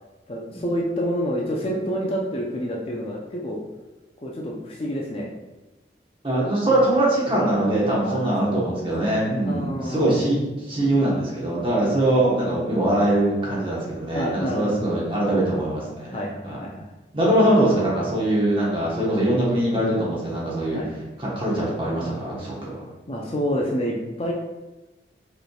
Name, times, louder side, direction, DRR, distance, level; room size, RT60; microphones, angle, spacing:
voice 1, 0.3-3.6 4.2-5.3 8.0-8.3 9.4-10.2 14.1-14.9 16.1-16.9 20.7-20.9 23.1-24.3, equal, 30° left, -2 dB, 0.4 m, -28 dB
voice 2, 6.2-10.4 10.7-16.6 17.1-20.8 21.2-22.8, right 1 dB, 30° right, -5 dB, 1.1 m, -22 dB
5.0 x 3.2 x 2.3 m, 1.1 s
head